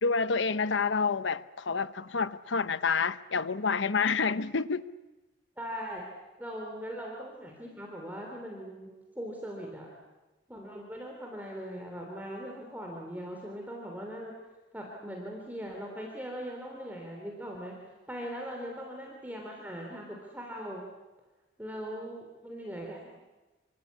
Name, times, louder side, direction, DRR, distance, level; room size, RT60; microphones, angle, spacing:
voice 1, 0.0-4.9, left 5 dB, 85° left, 0.9 m, -28 dB
voice 2, 5.6-6.1 6.4-9.9 10.5-14.4 14.7-17.8 18.1-20.8 21.6-23.1, equal, 10° right, 3.3 m, -40 dB
27.0 x 24.5 x 8.5 m
head